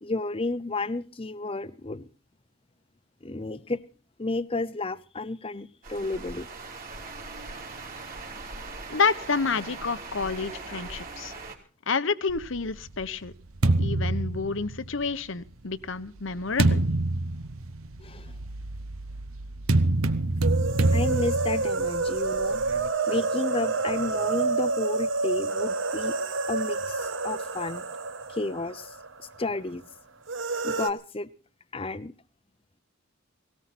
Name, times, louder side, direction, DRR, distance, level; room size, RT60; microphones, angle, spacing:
voice 1, 0.0-2.1 3.2-3.8 4.2-6.5 18.0-18.4 20.9-22.6 23.1-26.1 26.5-27.9 28.3-29.8 30.6-31.3 31.7-32.1, left 2 dB, 25° left, 15 dB, 0.7 m, -32 dB
sound 1, 5.8-11.6, right 3 dB, 40° right, 3.2 m, -40 dB
voice 2, 8.9-11.3 11.9-13.3 13.8-16.8, left 4 dB, 65° left, 14 dB, 1.0 m, -29 dB
sound 2, 12.3-15.1 15.8-22.9, right 2 dB, 85° right, 1.0 m, -27 dB
sound 3, 20.4-29.3 29.5-29.6 30.3-30.9, right 3 dB, 60° right, 1.2 m, -28 dB
18.5 x 18.0 x 4.3 m, 0.38 s
head